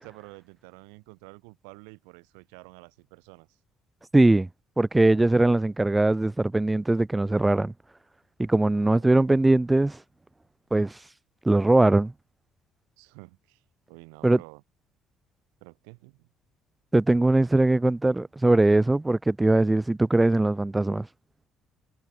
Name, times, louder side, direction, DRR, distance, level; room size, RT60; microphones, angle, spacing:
voice 1, 0.0-3.6 8.8-9.4 13.0-13.6 13.9-14.6 15.6-16.3, right 40 dB or more, 70° right, 6.3 m, -49 dB
voice 2, 4.1-4.5 4.8-7.7 8.4-10.0 10.7-11.0 11.4-12.1 14.2-14.4 16.9-21.1, right 2 dB, 15° right, 0.5 m, -21 dB
figure-of-eight pair, 50°, 0 cm